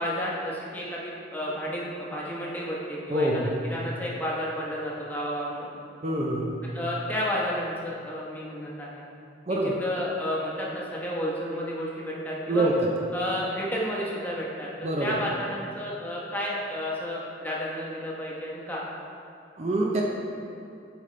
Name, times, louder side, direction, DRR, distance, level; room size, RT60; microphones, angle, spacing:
voice 1, 0.0-3.3 3.6-5.7 6.7-9.0 9.5-12.7 13.1-14.7 15.0-18.8, equal, 10° left, -5 dB, 1.0 m, -31 dB
voice 2, 3.1-3.6 6.0-6.6 9.5-9.8 12.5-12.7 14.8-15.2 19.6-20.0, right 1 dB, 35° right, -1 dB, 0.5 m, -25 dB
8.8 x 5.1 x 3.3 m, 2.6 s
head